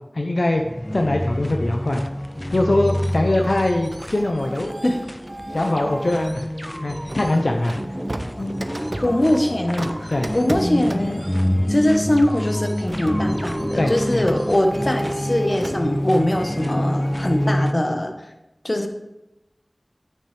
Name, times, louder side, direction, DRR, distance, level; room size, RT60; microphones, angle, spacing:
voice 1, 0.1-0.6 0.9-2.0 2.5-4.8 5.5-6.5 6.8-7.8 10.1-10.3 13.7-14.2, left 1 dB, 70° left, 2 dB, 0.7 m, -22 dB
sound 1, 0.6-17.7, equal, 15° left, 0.4 m, -27 dB
Ego Tripping, 2.5-15.3, equal, 15° right, 1.2 m, -38 dB
Printer, 3.1-6.4 7.1-17.6, right 1 dB, 55° right, 0.7 m, -35 dB
voice 2, 9.0-11.2 11.7-18.1 18.6-18.9, left 1 dB, 45° left, 4 dB, 1.1 m, -22 dB
10.0 x 8.5 x 3.3 m, 0.95 s
wide cardioid pair, 45°, 0 cm